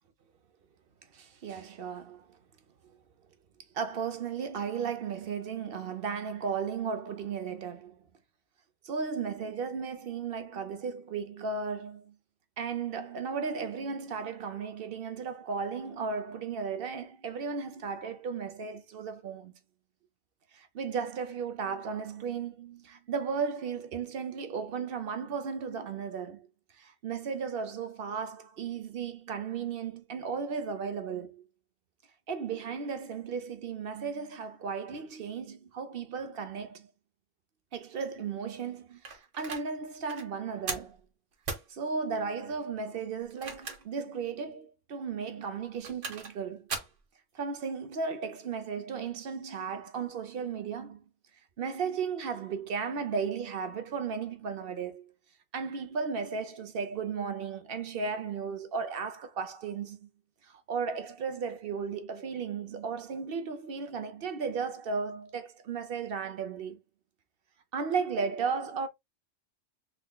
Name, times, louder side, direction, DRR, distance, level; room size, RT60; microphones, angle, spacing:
voice 1, 1.1-2.4 3.7-8.0 8.8-12.2 12.6-19.5 20.5-26.5 26.8-31.4 32.3-36.9 37.7-41.0 41.7-46.7 47.3-51.0 51.6-55.1 55.5-60.1 60.4-66.8 67.7-68.9, right 5 dB, 55° right, 0.8 m, -35 dB
sound 1, 39.1-39.7 40.1-40.3 40.7-41.0 41.5-41.7 43.2-44.0 44.4-44.5 45.6-46.4 46.7-47.0, right 4 dB, 90° right, 1.4 m, -38 dB
3.7 x 3.3 x 2.2 m
omnidirectional pair, 1.2 m